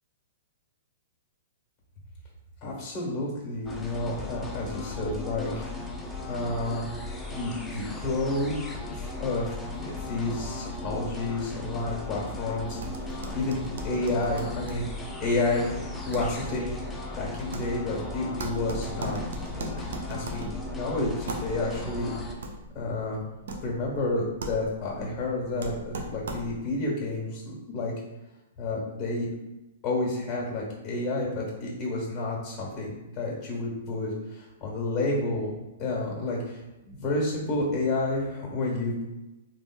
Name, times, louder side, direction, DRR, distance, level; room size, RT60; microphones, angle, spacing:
voice 1, 2.6-5.7 6.3-6.8 7.3-8.6 8.9-14.9 15.2-15.7 16.1-16.8 17.1-19.2 19.8-22.1 22.7-27.9 28.6-29.3 29.8-35.5 35.8-36.6 36.9-39.0, left 2 dB, 25° left, -2 dB, 1.3 m, -30 dB
sound 1, 3.7-22.4, left 2 dB, 10° left, 0.4 m, -37 dB
sound 2, 12.7-26.8, right 2 dB, 70° right, 0.4 m, -39 dB
3.0 x 2.4 x 2.2 m, 1.0 s
hypercardioid pair, 125°, 0 cm